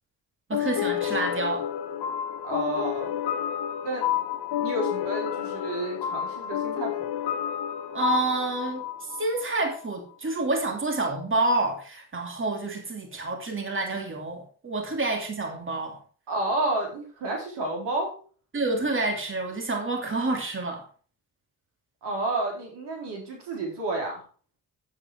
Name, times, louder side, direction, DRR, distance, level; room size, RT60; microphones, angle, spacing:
sound 1, 0.5-9.8, left 10 dB, 75° left, 1.3 m, -30 dB
voice 1, 0.5-1.7 7.9-8.8 9.2-16.0 18.5-20.8, right 3 dB, 30° right, 3 dB, 2.9 m, -28 dB
voice 2, 2.4-3.2 3.8-4.1 4.6-6.9 16.3-18.1 22.0-24.2, right 2 dB, 80° right, 0 dB, 4.3 m, -30 dB
8.7 x 8.7 x 4.7 m, 0.41 s
supercardioid pair, 65°, 40 cm